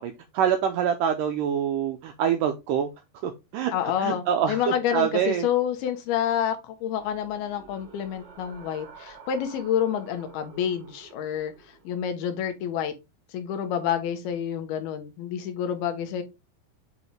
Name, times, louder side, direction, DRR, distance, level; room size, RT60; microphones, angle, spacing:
voice 1, 0.0-2.9 3.2-3.7 4.0-5.5, right 8 dB, 85° right, 6 dB, 1.9 m, -25 dB
voice 2, 3.7-11.5 11.8-12.9 13.3-16.2, left 9 dB, 75° left, 7 dB, 2.9 m, -28 dB
sound 1, 6.8-11.9, right 5 dB, 50° right, 3.1 m, -49 dB
8.5 x 3.7 x 3.3 m, 0.24 s
omnidirectional pair, 4.6 m